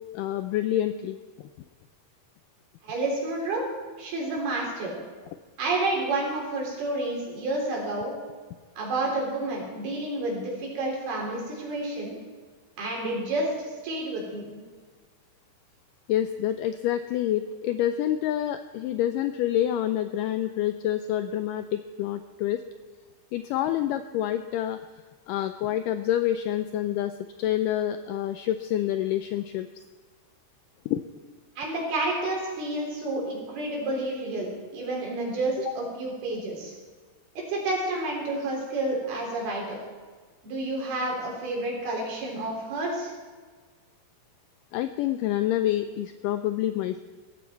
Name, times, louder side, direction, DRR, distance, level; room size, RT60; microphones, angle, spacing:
voice 1, 0.1-1.2 16.1-22.6 23.3-24.8 25.3-29.7 30.9-31.0 35.7-35.8 44.7-47.0, left 12 dB, 90° left, 9 dB, 1.9 m, -27 dB
voice 2, 2.8-3.6 4.0-4.9 5.6-8.2 8.8-12.1 12.8-14.5 31.6-36.7 37.5-39.8 40.4-43.1, right 2 dB, 85° right, -2 dB, 5.9 m, -30 dB
17.0 x 15.0 x 4.6 m, 1.5 s
omnidirectional pair, 4.4 m